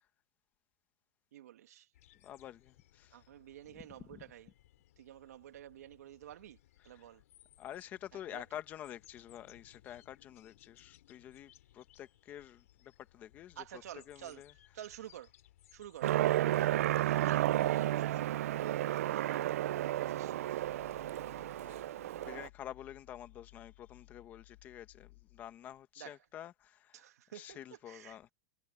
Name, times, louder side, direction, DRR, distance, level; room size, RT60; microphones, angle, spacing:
voice 1, 1.3-1.9 3.1-4.5 5.0-6.6 6.8-7.2 8.3-8.4 13.6-14.4 14.7-15.3 15.7-18.7 19.1-19.4 19.8-20.4 26.0-26.2 26.9-28.3, right 12 dB, 90° right, 2.2 m, -50 dB
sound 1, 1.9-19.1, left 14 dB, 65° left, 3.7 m, -65 dB
voice 2, 2.2-3.2 4.1-4.2 7.0-7.1 7.6-13.8 14.1-14.5 19.1-19.2 20.8-27.0 27.3-28.3, left 11 dB, 20° left, 1.2 m, -49 dB
Aircraft, 16.0-22.5, right 14 dB, 70° right, 0.5 m, -32 dB
sound 2, 20.3-25.7, left 21 dB, 50° left, 2.5 m, -60 dB
supercardioid pair, 175°, 8 cm